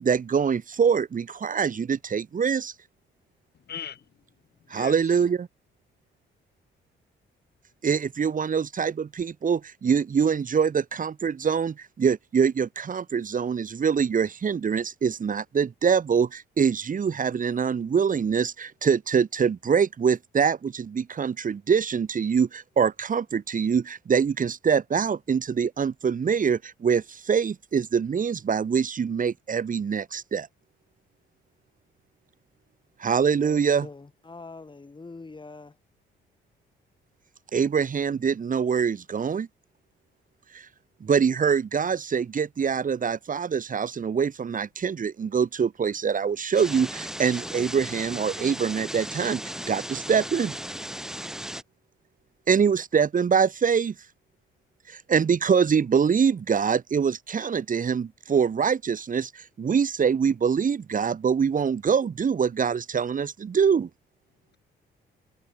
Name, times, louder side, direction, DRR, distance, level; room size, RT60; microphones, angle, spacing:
voice 1, 0.0-2.7 4.7-5.5 7.8-30.5 33.0-33.9 37.5-39.5 40.5-40.7 41.0-49.4 49.7-50.5 52.5-53.9 54.9-63.9, right 6 dB, 40° right, 2.5 m, -24 dB
voice 2, 3.5-4.1 4.6-5.2, left 8 dB, 55° left, 3.2 m, -40 dB
voice 3, 33.4-35.8, left 3 dB, 25° left, 6.3 m, -44 dB
sound 1, 46.5-51.6, equal, 5° right, 1.3 m, -36 dB
cardioid pair, 90°, 20 cm